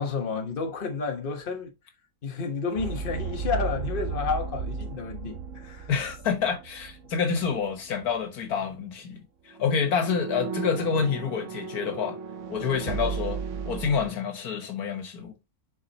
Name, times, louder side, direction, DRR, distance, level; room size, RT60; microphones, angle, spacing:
voice 1, 0.0-1.7 2.2-5.9, left 5 dB, 40° left, 1.3 m, -31 dB
sound 1, 2.8-7.6 7.9-8.1 9.5-14.1, right 5 dB, 65° right, 0.9 m, -34 dB
voice 2, 5.9-12.2 12.5-13.4 13.6-15.3, left 6 dB, 90° left, 1.8 m, -28 dB
7.3 x 4.9 x 2.9 m
omnidirectional pair, 1.6 m